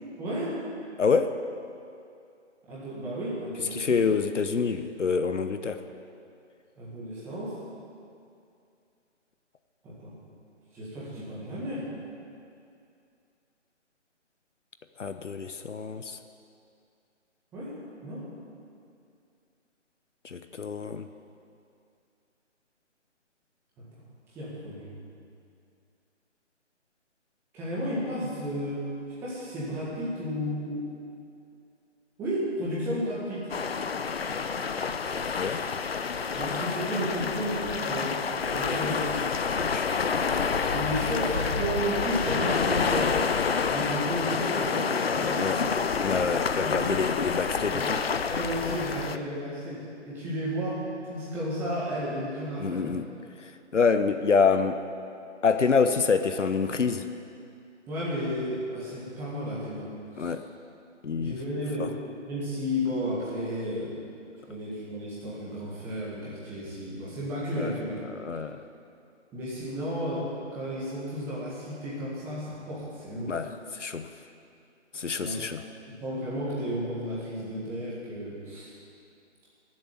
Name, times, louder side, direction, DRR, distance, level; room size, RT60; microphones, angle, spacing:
voice 1, 0.2-0.6 2.7-4.0 6.8-7.6 9.8-10.1 10.7-11.9 17.5-18.3 23.8-24.0 24.3-24.9 27.5-28.9 29.2-30.8 32.2-33.5 36.3-39.2 40.7-43.1 43.6-45.8 46.6-46.9 47.7-47.9 48.3-53.0 57.9-60.3 61.1-61.9 62.3-63.9 64.5-67.9 69.3-73.3 75.2-75.4 75.9-78.8, equal, 5° right, -8 dB, 1.7 m, -33 dB
voice 2, 1.0-1.3 3.7-5.8 15.0-16.2 20.2-21.1 35.4-35.6 39.6-40.0 45.4-45.6 46.0-48.0 52.6-53.1 53.4-54.8 55.4-57.1 60.2-60.4 61.0-61.4 61.8-61.9 67.6-67.7 68.1-68.6 73.3-74.1 74.9-75.6, left 5 dB, 75° left, 9 dB, 1.1 m, -27 dB
sound 1, 33.5-49.2, left 5 dB, 55° left, 0.7 m, -28 dB
20.5 x 7.9 x 7.4 m, 2.5 s
figure-of-eight pair, 165°, 36 cm